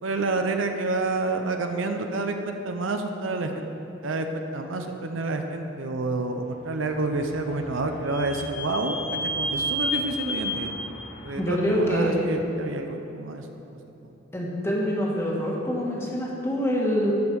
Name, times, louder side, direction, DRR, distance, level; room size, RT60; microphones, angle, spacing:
voice 1, 0.0-2.3 2.6-3.7 4.0-4.3 4.5-9.0 9.3-10.7 11.2-13.5, right 3 dB, 80° right, 5 dB, 0.7 m, -28 dB
Vehicle / Squeak, 6.7-12.3, equal, 35° left, 1.8 m, -32 dB
voice 2, 11.3-12.2 14.3-17.1, equal, 15° left, -4 dB, 1.4 m, -25 dB
13.0 x 5.2 x 4.8 m, 2.9 s
head